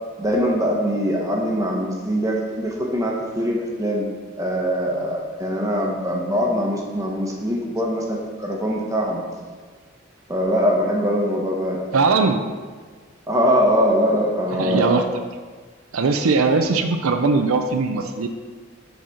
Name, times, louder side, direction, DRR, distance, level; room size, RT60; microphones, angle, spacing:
voice 1, 0.2-4.1 4.4-9.2 10.3-11.8 13.3-15.0, equal, 15° right, -2 dB, 1.1 m, -22 dB
voice 2, 11.9-12.4 14.5-15.1 15.9-18.3, right 4 dB, 85° right, 5 dB, 0.5 m, -20 dB
7.9 x 4.1 x 6.4 m, 1.5 s
head